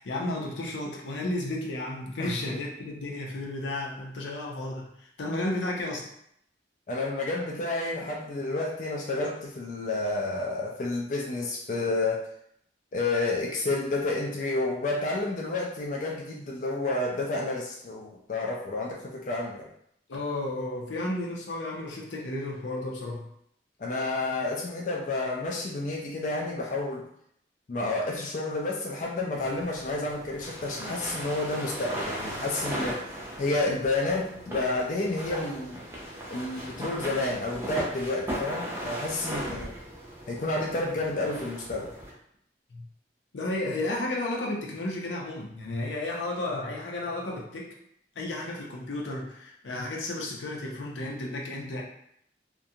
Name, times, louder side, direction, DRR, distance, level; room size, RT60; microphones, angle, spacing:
voice 1, 0.0-6.1 20.1-23.3 42.7-42.8 43.3-47.8 48.2-51.8, left 2 dB, 90° left, -1 dB, 0.6 m, -33 dB
voice 2, 2.2-2.6 6.9-12.3 12.9-19.7 23.8-27.1 27.7-33.0 33.4-35.9 36.3-39.8 40.3-41.9, left 2 dB, 45° left, -2 dB, 0.3 m, -30 dB
sound 1, 29.3-42.1, equal, 15° right, 0.5 m, -38 dB
2.5 x 2.2 x 2.7 m, 0.71 s
head